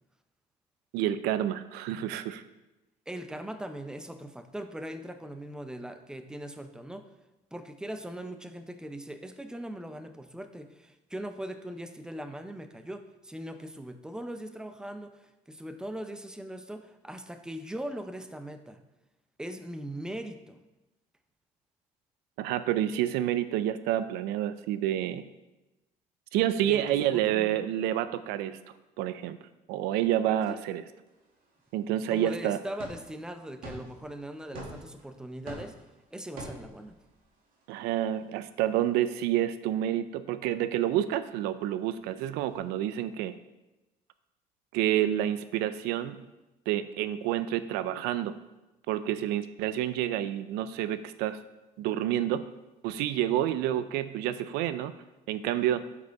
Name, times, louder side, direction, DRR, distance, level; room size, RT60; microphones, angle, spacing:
voice 1, 0.9-2.4 22.4-25.2 26.3-28.6 29.0-29.4 29.7-30.8 31.7-32.6 37.7-43.3 44.7-46.2 46.7-48.3 48.9-51.4 51.8-52.4 52.8-54.9 55.3-55.8, right 12 dB, 85° right, 13 dB, 0.4 m, -28 dB
voice 2, 3.1-7.1 7.5-18.8 19.4-20.6 26.6-27.5 30.5-30.6 32.1-35.8 36.1-37.0, right 1 dB, 5° right, 8 dB, 0.6 m, -40 dB
sound 1, 31.1-39.4 41.8-42.6, right 1 dB, 60° right, 2.2 m, -49 dB
6.8 x 5.0 x 4.6 m, 1.0 s
cardioid pair, 90°, 16 cm